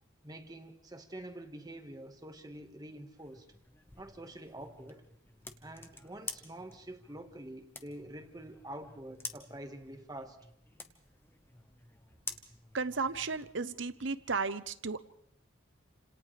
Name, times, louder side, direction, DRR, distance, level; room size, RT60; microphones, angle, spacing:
voice 1, 0.2-3.5 4.0-5.0 5.6-10.4, right 1 dB, 20° right, 1.6 m, -46 dB
sound 1, 3.2-13.5, left 3 dB, 10° left, 1.2 m, -49 dB
voice 2, 12.7-15.0, right 4 dB, 65° right, 0.9 m, -34 dB
29.5 x 26.5 x 3.4 m
head